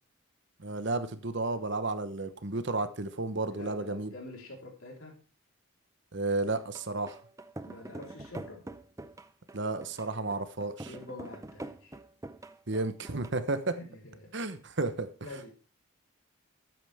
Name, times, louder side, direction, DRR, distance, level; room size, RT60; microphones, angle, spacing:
voice 1, 0.6-4.1 6.1-7.2 9.5-10.9 12.7-13.8 14.3-15.1, right 3 dB, 55° right, 11 dB, 1.0 m, -32 dB
voice 2, 3.5-5.2 7.7-8.6 10.8-12.0 13.7-14.3 15.2-15.5, left 2 dB, 75° left, 0 dB, 4.1 m, -46 dB
sound 1, 6.6-13.3, right 2 dB, 15° right, 0.6 m, -45 dB
13.0 x 9.1 x 3.5 m, 0.36 s
head